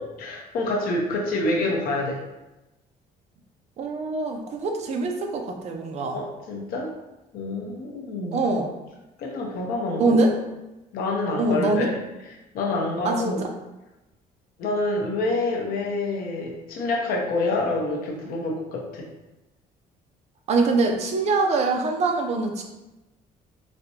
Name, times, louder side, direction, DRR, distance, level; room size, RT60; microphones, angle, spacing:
voice 1, 0.0-2.2 6.1-6.9 7.3-8.4 9.2-10.2 10.9-11.9 12.5-13.5 14.6-19.1, left 2 dB, 70° left, 0 dB, 0.8 m, -27 dB
voice 2, 3.8-6.2 8.3-8.7 10.0-10.3 11.4-11.9 13.0-13.5 20.5-22.6, right 3 dB, 45° right, 3 dB, 0.5 m, -23 dB
4.1 x 2.2 x 2.8 m, 1.0 s
cardioid pair, 160°, 16 cm